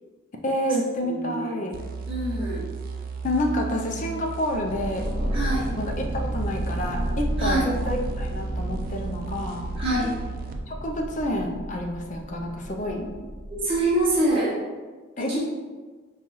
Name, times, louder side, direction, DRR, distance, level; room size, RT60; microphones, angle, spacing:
voice 1, 0.4-1.8 3.2-5.1 5.8-9.6 10.7-13.1 15.2-15.4, left 1 dB, 40° left, 1 dB, 0.4 m, -28 dB
voice 2, 1.0-1.7 2.1-2.7 5.3-5.7 7.4-7.7 9.8-10.1 13.5-14.5 15.2-15.4, right 1 dB, 25° right, -8 dB, 0.9 m, -25 dB
sound 1, 1.7-10.6, right 4 dB, 45° right, 0.3 m, -34 dB
sound 2, 4.5-14.3, equal, 15° left, 0.8 m, -32 dB
5.5 x 2.3 x 3.0 m, 1.4 s
head